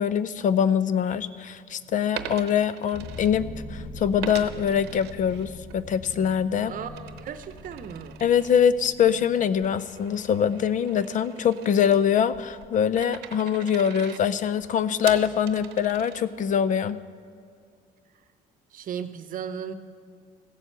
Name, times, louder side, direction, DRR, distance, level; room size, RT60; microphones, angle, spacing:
voice 1, 0.0-6.7 8.2-17.0, left 8 dB, 50° left, 16 dB, 0.5 m, -23 dB
Coin (dropping), 2.2-3.8 4.2-5.8 6.2-16.6, right 11 dB, 85° right, 0.8 m, -42 dB
sound 1, 2.9-11.7, left 2 dB, 30° left, 3.1 m, -43 dB
voice 2, 6.6-8.2 18.7-19.7, right 8 dB, 55° right, 12 dB, 0.8 m, -36 dB
15.5 x 7.2 x 8.0 m, 2.3 s
cardioid pair, 110°, 17 cm